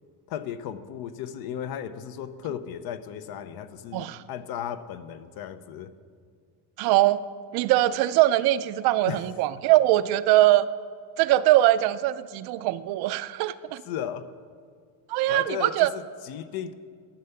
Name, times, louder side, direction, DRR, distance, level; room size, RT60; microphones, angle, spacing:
voice 1, 0.3-5.9 9.1-9.3 13.9-14.3 15.2-16.7, left 9 dB, 65° left, 11 dB, 0.7 m, -35 dB
voice 2, 3.9-4.2 6.8-7.2 7.5-10.7 11.2-13.8 15.1-15.9, right 15 dB, 70° right, 14 dB, 0.5 m, -22 dB
11.5 x 5.6 x 7.0 m, 2.1 s
cardioid pair, 110°, 40 cm